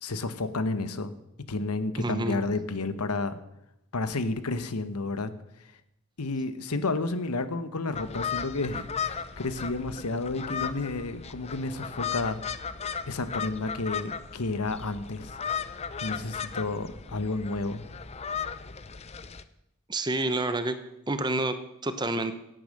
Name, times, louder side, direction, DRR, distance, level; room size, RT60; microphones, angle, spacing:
voice 1, 0.0-1.1 1.5-3.4 3.9-5.3 6.2-12.4 13.1-15.4 16.0-17.8, left 3 dB, 90° left, 11 dB, 1.1 m, -31 dB
voice 2, 2.0-2.4 19.9-20.8 21.1-21.6 21.8-22.3, right 2 dB, 20° right, 10 dB, 0.8 m, -28 dB
sound 1, 7.9-19.4, left 6 dB, 30° left, 0.5 m, -36 dB
17.0 x 9.0 x 6.5 m, 0.86 s
head